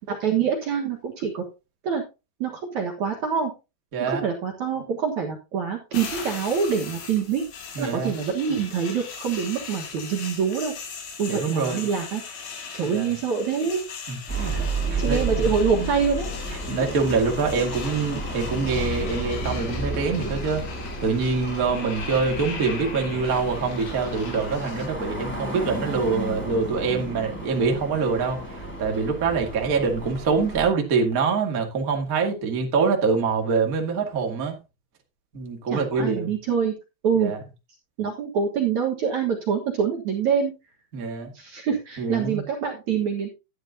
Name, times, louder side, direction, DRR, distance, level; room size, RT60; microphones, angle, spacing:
voice 1, 0.1-1.4 1.8-2.0 2.4-3.5 4.0-7.4 7.8-10.7 11.2-12.2 12.7-13.8 14.5-14.6 15.0-16.3 35.7-36.7 37.0-37.3 38.0-40.5 41.3-43.3, right 6 dB, 60° right, 2.2 m, -25 dB
voice 2, 3.9-4.2 7.7-8.1 11.3-11.8 12.8-13.1 14.1-14.5 14.9-15.5 15.7-15.9 16.7-20.6 21.0-28.4 28.8-34.5 35.3-36.3 37.2-37.4 40.9-41.3 42.0-42.4, right 4 dB, 35° right, 1.5 m, -25 dB
sound 1, 5.9-24.9, left 5 dB, 70° left, 4.6 m, -39 dB
sound 2, 14.3-30.7, right 2 dB, 5° left, 3.8 m, -32 dB
12.0 x 10.5 x 2.8 m
omnidirectional pair, 5.1 m